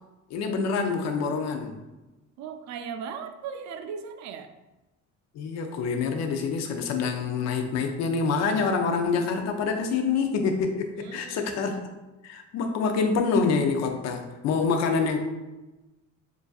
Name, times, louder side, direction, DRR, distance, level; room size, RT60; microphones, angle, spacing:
voice 1, 0.3-1.8 5.3-11.9 12.2-15.2, left 5 dB, 60° left, 4 dB, 0.6 m, -26 dB
voice 2, 2.4-4.5 11.0-11.7, right 6 dB, 65° right, 8 dB, 0.5 m, -38 dB
7.0 x 2.6 x 2.4 m, 1.1 s
cardioid pair, 165°, 30 cm